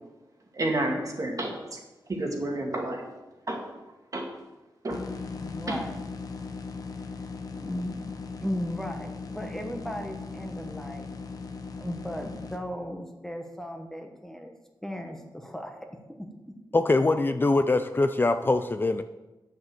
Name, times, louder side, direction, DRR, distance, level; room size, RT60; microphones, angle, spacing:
voice 1, 0.5-1.8 2.1-3.1 3.5-3.7 4.1-4.3 4.8-5.0 5.7-5.8, right 1 dB, 45° right, 1 dB, 2.1 m, -30 dB
sound 1, 4.9-12.6, left 4 dB, 50° left, 1.1 m, -38 dB
voice 2, 5.2-6.0 7.5-8.1 8.4-11.1 11.8-14.5 14.8-15.9 16.2-16.3, equal, 5° left, 3 dB, 1.2 m, -36 dB
voice 3, 16.7-19.0, left 2 dB, 25° left, 9 dB, 0.5 m, -23 dB
9.8 x 6.6 x 7.6 m, 1.1 s
wide cardioid pair, 130°, 8 cm